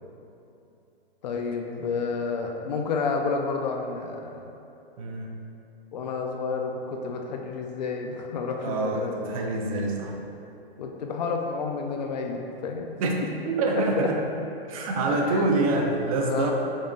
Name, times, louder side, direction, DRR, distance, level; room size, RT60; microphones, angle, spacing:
voice 1, 1.2-4.5 5.9-9.1 10.8-12.9 15.1-15.4 16.3-16.5, left 4 dB, 45° left, 2 dB, 0.4 m, -30 dB
voice 2, 5.0-5.3 8.6-10.2 13.0-13.2 13.4-14.2 14.6-16.5, right 2 dB, 35° right, 1 dB, 0.5 m, -26 dB
5.3 x 3.4 x 2.6 m, 2.9 s
hypercardioid pair, 125°, 31 cm